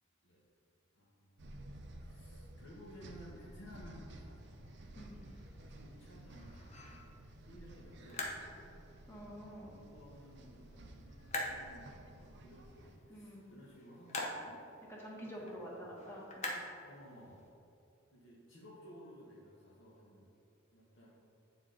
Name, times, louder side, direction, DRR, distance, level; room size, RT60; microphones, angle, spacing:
voice 1, 0.9-1.4 1.8-4.9 5.7-8.7 9.3-14.6 15.2-15.8 16.8-17.5 18.1-20.3 20.7-21.1, equal, 65° left, -6 dB, 1.1 m, -56 dB
sound 1, 1.4-13.0, right 1 dB, 60° right, 0.6 m, -53 dB
sound 2, 4.3-17.5, left 2 dB, 35° left, 0.8 m, -47 dB
voice 2, 9.1-9.7 13.1-13.4 14.9-16.5, equal, 10° left, -4 dB, 1.1 m, -48 dB
8.8 x 3.9 x 3.8 m, 2.7 s
head